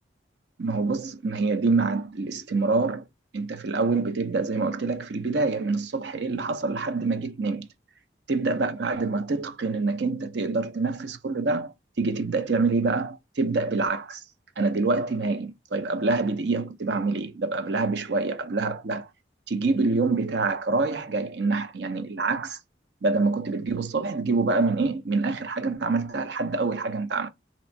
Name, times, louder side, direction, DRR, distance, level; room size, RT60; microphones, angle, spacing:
voice 1, 0.6-3.0 3.3-7.7 8.3-14.2 14.6-19.1 19.5-22.6 23.0-27.3, right 3 dB, 65° right, 0.6 m, -26 dB
2.9 x 2.6 x 4.3 m
head